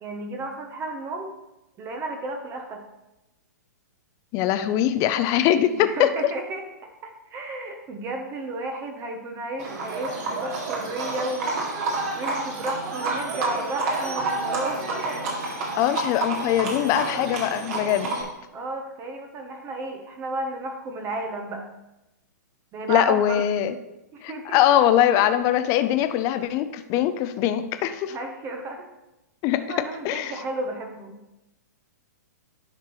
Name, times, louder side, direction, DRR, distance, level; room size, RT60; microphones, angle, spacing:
voice 1, 0.0-1.3 1.8-2.8 5.7-11.6 12.2-15.0 18.5-21.7 22.7-23.4 24.1-24.6 25.2-25.3 28.1-28.9 29.7-31.2, right 2 dB, 25° right, 4 dB, 0.9 m, -33 dB
voice 2, 4.3-6.1 15.8-18.1 22.9-23.7 24.2-28.2 29.4-29.7 30.0-30.3, left 11 dB, 35° left, 10 dB, 0.5 m, -22 dB
Livestock farm animals working animals, 9.6-18.2, right 3 dB, 55° right, 2.3 m, -29 dB
10.5 x 5.9 x 3.1 m, 0.95 s
hypercardioid pair, 120°, 10 cm